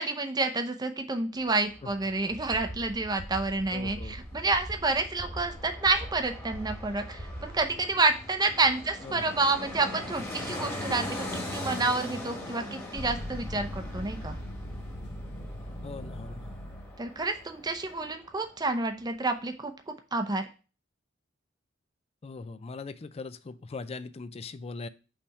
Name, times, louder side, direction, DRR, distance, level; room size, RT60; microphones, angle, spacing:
voice 1, 0.0-14.4 17.0-19.7 20.1-20.5, right 3 dB, 20° right, 7 dB, 0.7 m, -29 dB
Fixed-wing aircraft airplane, 1.4-18.4 18.7-18.8, left 1 dB, 15° left, 1.4 m, -41 dB
sound 1, 2.3-7.7, equal, 60° right, 1.2 m, -42 dB
voice 2, 3.7-4.2 9.0-9.4 15.8-16.6 22.2-24.9, left 3 dB, 30° left, 14 dB, 0.4 m, -40 dB
sound 2, 12.9-17.0, left 1 dB, 60° left, 1.0 m, -39 dB
5.5 x 3.4 x 5.3 m, 0.35 s
head